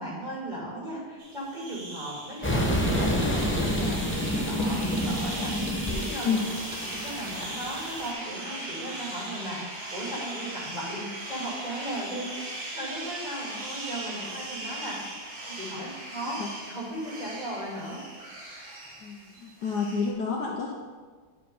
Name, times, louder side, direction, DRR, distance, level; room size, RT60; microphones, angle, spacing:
voice 1, 0.0-6.4 6.8-12.5 12.7-18.0 18.5-18.7, right 1 dB, 20° right, -6 dB, 2.5 m, -36 dB
sound 1, 1.2-20.1, right 1 dB, 85° right, 2.4 m, -39 dB
sound 2, 2.4-8.1, equal, 10° left, 0.6 m, -28 dB
voice 2, 19.0-20.7, left 5 dB, 65° left, 0 dB, 1.2 m, -29 dB
9.5 x 4.9 x 5.4 m, 1.5 s
omnidirectional pair, 2.1 m